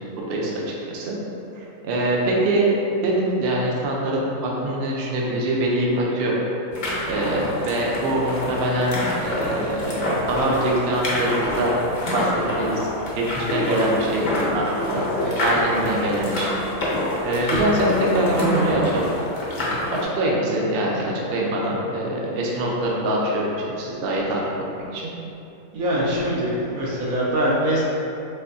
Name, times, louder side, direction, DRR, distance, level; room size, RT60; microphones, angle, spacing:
voice 1, 0.2-1.2 1.5-2.7 3.0-6.4 7.1-11.7 12.1-12.9 13.1-14.2 14.5-15.1 15.4-16.6 17.2-19.1 19.9-24.4 24.9-25.1, right 1 dB, 60° right, -3 dB, 0.6 m, -24 dB
sound 1, 6.7-20.0, left 1 dB, 50° left, 0.5 m, -26 dB
voice 2, 25.7-27.8, equal, 90° right, -6 dB, 1.3 m, -23 dB
4.2 x 2.6 x 2.6 m, 2.8 s
omnidirectional pair, 1.5 m